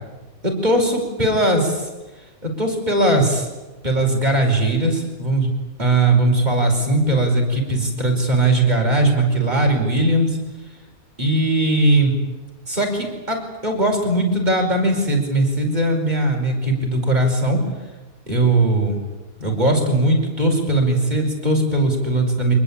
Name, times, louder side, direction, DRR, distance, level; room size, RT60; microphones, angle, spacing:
voice 1, 0.4-1.9 2.4-3.5 3.8-5.5 5.8-10.4 11.2-12.1 12.7-17.6 18.3-19.0 19.4-22.5, right 1 dB, 30° right, 1 dB, 5.3 m, -19 dB
25.0 x 20.0 x 8.8 m, 1.2 s
omnidirectional pair, 1.5 m